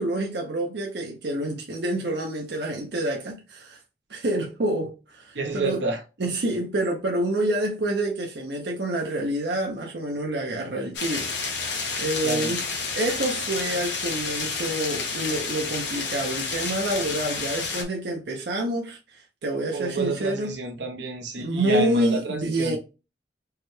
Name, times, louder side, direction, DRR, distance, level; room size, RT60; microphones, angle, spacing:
voice 1, 0.0-3.8 4.1-5.8 6.2-12.6 12.9-20.5 21.4-22.8, right 1 dB, 65° right, 0.7 m, -28 dB
voice 2, 5.3-6.0 12.2-12.5 19.7-22.8, right 2 dB, 85° right, 1.0 m, -29 dB
sound 1, 10.9-17.8, left 4 dB, 80° left, 1.3 m, -30 dB
4.8 x 2.3 x 3.1 m
head